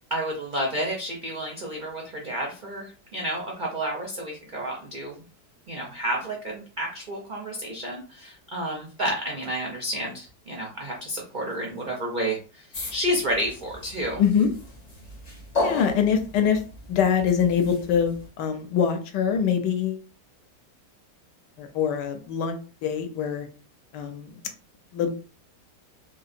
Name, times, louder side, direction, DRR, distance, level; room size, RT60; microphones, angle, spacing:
voice 1, 0.1-5.2 5.7-14.2, equal, 75° right, -1 dB, 0.4 m, -30 dB
sound 1, 12.7-18.3, left 2 dB, 60° left, 0.4 m, -35 dB
voice 2, 14.2-14.5 15.6-16.6 16.9-20.1 21.6-23.5 23.9-24.4 24.9-25.1, left 7 dB, 80° left, 6 dB, 1.2 m, -24 dB
3.2 x 2.8 x 2.5 m, 0.36 s
omnidirectional pair, 1.9 m